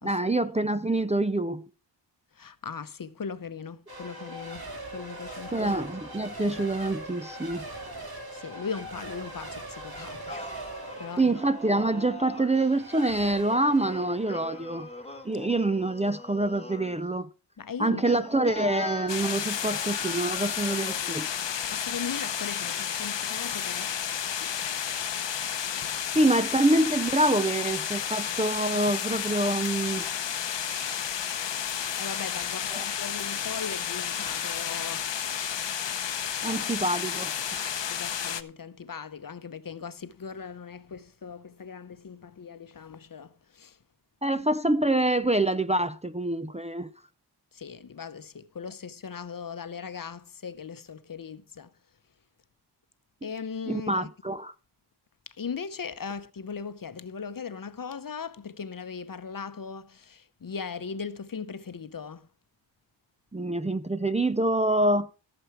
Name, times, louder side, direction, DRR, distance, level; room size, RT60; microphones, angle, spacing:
voice 1, 0.0-1.7 5.5-7.7 11.2-14.9 15.2-17.3 17.8-21.3 26.1-30.1 32.7-32.8 36.4-37.8 44.2-46.9 53.7-54.5 63.3-65.1, right 2 dB, 15° right, 0.5 m, -26 dB
voice 2, 2.3-4.6 4.9-5.8 8.3-10.6 11.0-11.4 17.6-18.2 21.5-24.1 24.4-24.8 32.0-35.2 36.4-36.7 37.9-43.8 47.5-51.7 53.2-54.1 55.3-62.3, left 6 dB, 50° left, 0.8 m, -39 dB
Race car auto racing / Accelerating revving vroom / Mechanisms, 3.9-16.4, right 1 dB, 55° right, 3.9 m, -42 dB
Singing, 9.9-12.7 13.8-17.0 18.0-21.1, left 2 dB, 15° left, 1.4 m, -42 dB
sound 1, 19.1-38.4, left 8 dB, 80° left, 0.9 m, -31 dB
15.0 x 7.0 x 4.7 m
wide cardioid pair, 95°, 43 cm